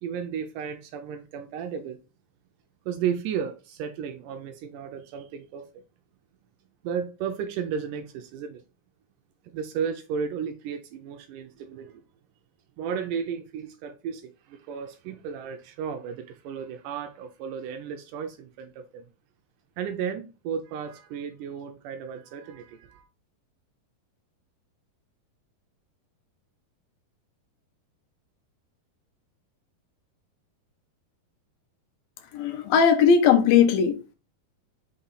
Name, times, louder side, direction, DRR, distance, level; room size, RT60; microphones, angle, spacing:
voice 1, 0.0-2.0 2.9-5.8 6.8-8.6 9.5-12.0 12.8-19.1 19.8-23.0, right 7 dB, 80° right, 2.0 m, -34 dB
voice 2, 32.3-34.2, left 7 dB, 80° left, 2.7 m, -19 dB
6.0 x 4.2 x 3.9 m
omnidirectional pair, 4.2 m